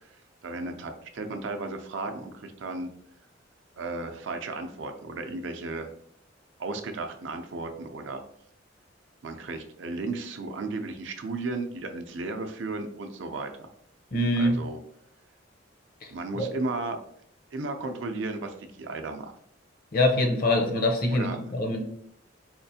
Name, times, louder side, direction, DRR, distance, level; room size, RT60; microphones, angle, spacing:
voice 1, 0.4-2.9 3.8-5.9 6.6-8.2 9.2-13.7 14.4-14.8 16.1-17.0 17.5-19.3 21.1-21.4, right 3 dB, 70° right, 5 dB, 0.5 m, -34 dB
voice 2, 14.1-14.6 16.0-16.5 19.9-21.8, left 1 dB, 50° left, 4 dB, 0.6 m, -24 dB
4.3 x 2.4 x 2.7 m, 0.69 s
head